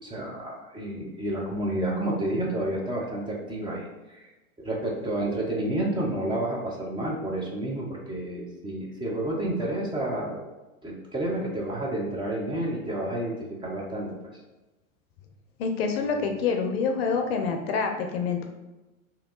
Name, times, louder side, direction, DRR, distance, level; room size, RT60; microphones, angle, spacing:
voice 1, 0.0-4.3 4.6-10.4 10.8-14.1, right 1 dB, 10° right, -3 dB, 0.6 m, -30 dB
voice 2, 15.6-18.5, left 5 dB, 50° left, 4 dB, 0.6 m, -27 dB
3.4 x 2.9 x 3.8 m, 1.1 s
figure-of-eight pair, 95°, 42 cm